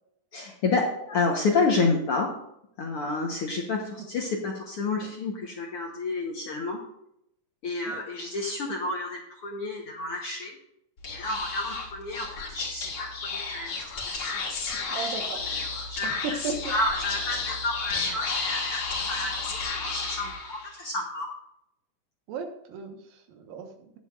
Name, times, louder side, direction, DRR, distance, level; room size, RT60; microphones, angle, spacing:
voice 1, 0.3-2.3 2.8-6.8 7.6-10.6 11.1-14.5 15.5-16.4 16.7-21.3, left 3 dB, 65° left, 1 dB, 1.5 m, -30 dB
Speech / Whispering, 11.0-20.8, left 4 dB, 45° left, 2.3 m, -32 dB
voice 2, 14.9-15.5 16.0-16.7 22.3-24.0, right 4 dB, 90° right, 5 dB, 3.1 m, -36 dB
19.0 x 7.4 x 2.5 m, 0.78 s
omnidirectional pair, 3.9 m